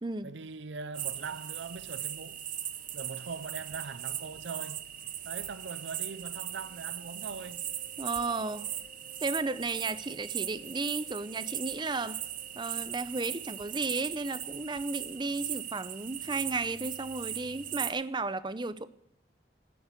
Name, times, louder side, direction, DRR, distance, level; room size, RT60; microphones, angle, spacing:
voice 1, 0.2-2.5 2.9-5.0 5.3-7.7, right 5 dB, 90° right, 0.6 m, -41 dB
sound 1, 0.9-17.9, right 11 dB, 50° right, 0.9 m, -39 dB
Wind instrument woodwind instrument, 5.9-12.9, left 2 dB, 30° left, 1.0 m, -60 dB
voice 2, 8.0-8.7 9.2-12.2 12.6-18.9, right 3 dB, 25° right, 0.6 m, -34 dB
12.5 x 9.9 x 8.1 m
head